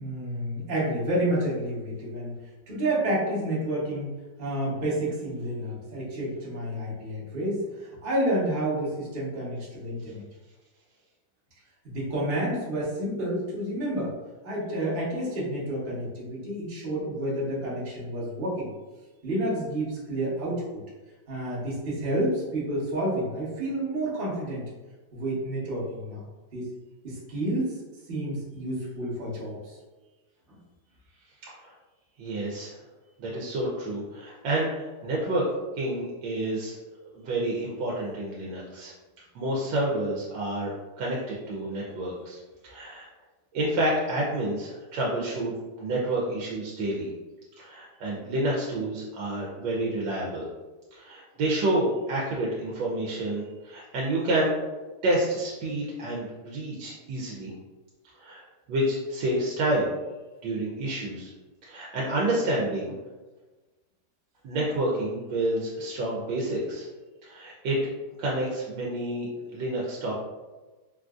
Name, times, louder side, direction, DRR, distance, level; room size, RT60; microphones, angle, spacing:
voice 1, 0.0-2.3 2.7-4.1 4.4-10.2 11.8-14.1 14.4-18.7 19.2-20.8 21.3-24.6 25.1-26.3 26.5-26.7 27.0-27.8 28.1-29.8 30.5-30.6, right 1 dB, 40° right, -6 dB, 0.9 m, -29 dB
voice 2, 32.2-32.8 33.2-35.4 35.8-36.8 37.1-38.9 39.3-42.4 42.6-43.1 43.5-45.5 45.8-47.1 47.6-50.5 51.0-54.5 55.0-57.5 58.2-58.4 58.7-59.9 60.4-61.3 61.6-62.9 64.4-66.8 67.2-67.8 68.2-70.2, right 1 dB, 85° right, -4 dB, 1.3 m, -29 dB
3.8 x 2.5 x 2.3 m, 1.2 s
omnidirectional pair, 2.0 m